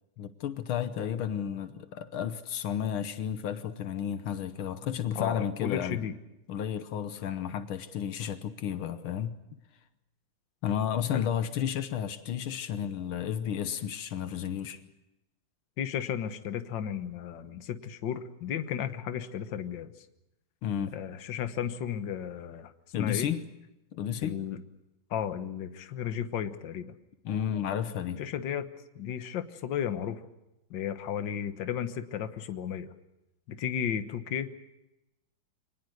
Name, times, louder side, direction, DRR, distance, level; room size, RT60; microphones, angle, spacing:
voice 1, 0.2-6.0 6.5-9.4 10.6-14.8 20.6-20.9 22.9-23.5 23.9-24.4 27.3-28.2, left 9 dB, 85° left, 11 dB, 1.8 m, -32 dB
voice 2, 5.2-6.1 11.1-11.3 15.8-19.9 20.9-22.7 23.0-23.3 24.2-24.6 25.1-26.9 28.2-28.7 29.0-30.2 30.7-32.9 33.5-34.7, left 9 dB, 65° left, 9 dB, 1.8 m, -34 dB
25.0 x 19.0 x 7.9 m, 0.93 s
omnidirectional pair, 2.3 m